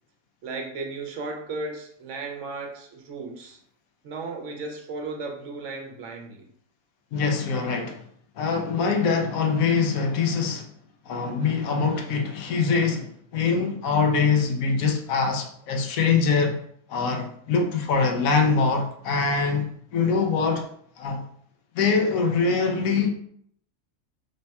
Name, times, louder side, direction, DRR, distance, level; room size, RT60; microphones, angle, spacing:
voice 1, 0.4-3.6 4.0-6.4, right 3 dB, 70° right, 1.0 m, -35 dB
voice 2, 7.1-8.0 8.4-10.7 11.1-16.6 16.9-20.7 21.0-21.2 21.7-23.1, left 5 dB, 85° left, 1.1 m, -23 dB
3.3 x 2.2 x 4.1 m
omnidirectional pair, 1.4 m